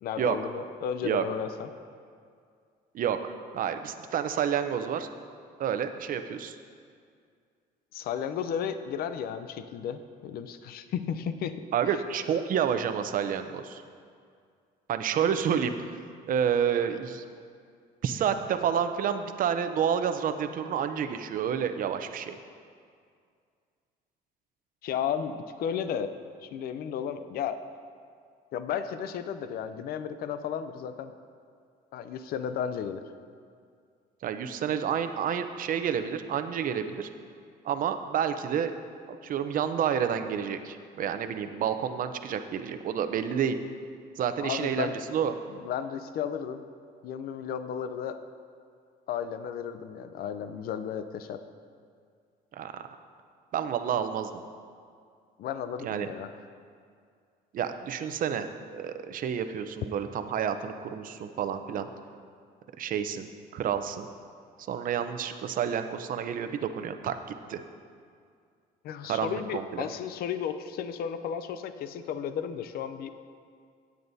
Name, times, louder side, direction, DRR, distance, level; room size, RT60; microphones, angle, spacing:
voice 1, 0.0-1.7 7.9-11.6 24.8-26.1 26.4-27.6 28.5-31.1 31.9-33.0 44.4-45.0 45.6-46.6 47.0-48.2 49.1-51.4 55.4-56.3 68.8-73.1, left 8 dB, 65° left, 10 dB, 0.5 m, -33 dB
voice 2, 2.9-5.1 5.6-6.6 11.7-13.8 14.9-15.9 16.3-17.2 18.0-22.4 34.2-37.1 37.6-38.7 39.1-43.6 44.2-45.3 52.5-52.8 53.5-54.3 55.8-56.1 57.5-61.9 62.8-63.3 63.5-64.1 64.7-67.2 67.5-67.6 69.0-69.9, right 8 dB, 55° right, 9 dB, 0.7 m, -29 dB
16.5 x 9.2 x 2.7 m, 2.2 s
cardioid pair, 110°, 17 cm